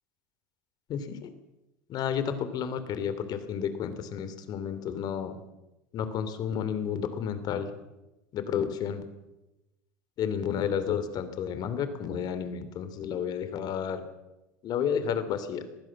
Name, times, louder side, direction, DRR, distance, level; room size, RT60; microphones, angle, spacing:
voice 1, 0.9-1.3 1.9-5.4 5.9-7.7 8.3-9.0 10.2-14.0 14.6-15.7, left 8 dB, 50° left, 12 dB, 2.9 m, -31 dB
22.5 x 15.5 x 7.5 m, 0.99 s
supercardioid pair, 90°, 9 cm